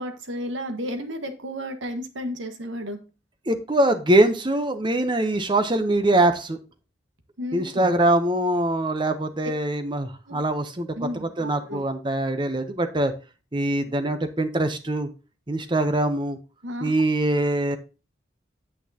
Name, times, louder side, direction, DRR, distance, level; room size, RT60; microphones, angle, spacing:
voice 1, 0.0-3.0 7.4-7.9 9.4-9.5 10.3-10.4 10.9-11.8 16.6-16.9, equal, 85° right, 6 dB, 1.5 m, -33 dB
voice 2, 3.5-6.6 7.5-10.9 11.1-13.1 13.5-15.1 15.5-16.4 16.8-17.8, right 1 dB, 25° right, 9 dB, 0.7 m, -23 dB
8.9 x 8.2 x 2.8 m, 0.32 s
head